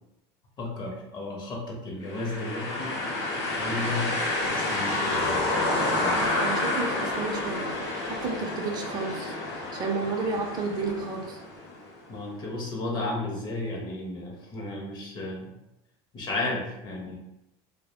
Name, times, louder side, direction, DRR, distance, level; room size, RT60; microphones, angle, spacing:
voice 1, 0.6-2.9 3.5-4.1 4.5-5.4 5.8-6.2 12.1-15.5 16.1-17.2, left 2 dB, 35° left, -1 dB, 0.6 m, -33 dB
sound 1, 2.1-11.9, left 2 dB, 80° left, 0.8 m, -29 dB
voice 2, 6.4-7.7 8.1-9.3 9.7-11.4, right 3 dB, 30° right, 2 dB, 0.4 m, -31 dB
2.2 x 2.0 x 2.9 m, 0.88 s
supercardioid pair, 130°, 13 cm